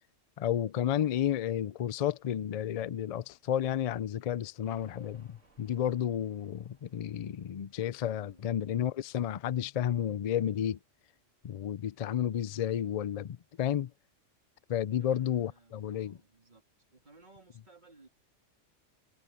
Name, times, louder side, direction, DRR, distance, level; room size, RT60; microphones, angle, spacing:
voice 1, 0.4-10.8 11.4-13.9 14.7-16.2, left 10 dB, 75° left, 0.3 m, -32 dB
sound 1, 4.5-10.1 10.4-10.5, right 2 dB, 70° right, 3.9 m, -65 dB
voice 2, 8.2-8.5 15.0-16.6 16.9-18.1, right 3 dB, 35° right, 3.4 m, -59 dB
omnidirectional pair, 1.3 m